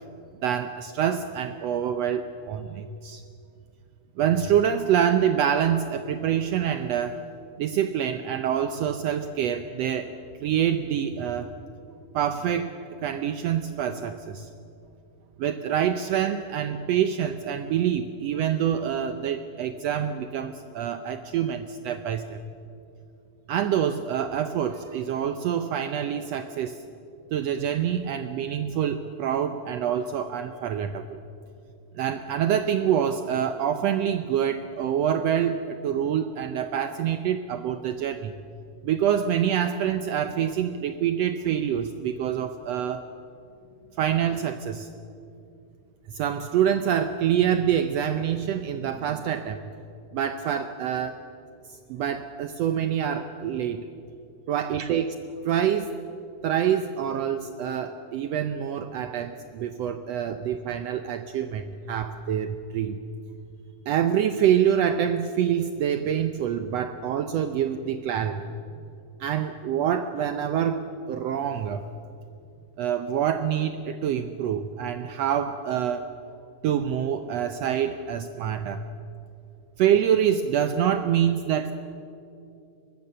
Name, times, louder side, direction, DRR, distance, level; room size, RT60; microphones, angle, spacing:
voice 1, 0.4-3.2 4.2-7.2 7.6-10.1 10.4-11.5 12.1-12.7 13.0-14.5 15.4-22.4 23.5-26.8 27.3-31.2 31.9-38.3 38.8-43.0 44.0-44.9 46.1-49.7 50.1-51.2 51.9-53.9 54.5-55.1 55.4-55.9 56.4-63.0 63.9-68.5 69.2-71.8 72.8-76.1 76.6-78.8 79.8-81.7, right 9 dB, 75° right, 9 dB, 1.6 m, -26 dB
23.0 x 20.0 x 6.8 m, 2.6 s
omnidirectional pair, 3.6 m